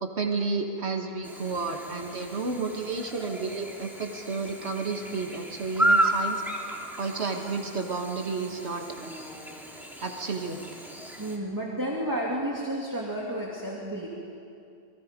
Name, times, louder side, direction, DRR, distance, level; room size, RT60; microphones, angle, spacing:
voice 1, 0.0-6.4 7.0-8.8 10.0-10.6, right 4 dB, 80° right, 3 dB, 1.9 m, -31 dB
Chirp tweet / Buzz, 1.2-11.4, right 1 dB, ahead, 2.4 m, -32 dB
voice 2, 11.2-14.1, right 1 dB, 15° right, -3 dB, 2.2 m, -31 dB
27.5 x 22.5 x 5.2 m, 2.5 s
omnidirectional pair, 1.1 m